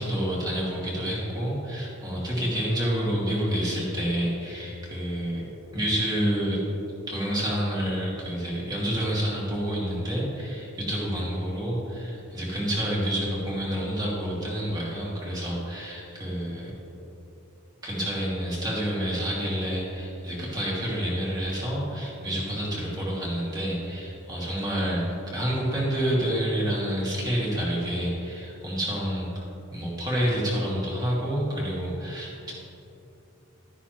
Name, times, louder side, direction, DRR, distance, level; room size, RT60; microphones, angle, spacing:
voice 1, 0.0-6.6 7.1-16.7 17.8-29.3 29.7-32.5, equal, 20° right, -6 dB, 2.3 m, -28 dB
12.5 x 9.9 x 3.0 m, 2.9 s
head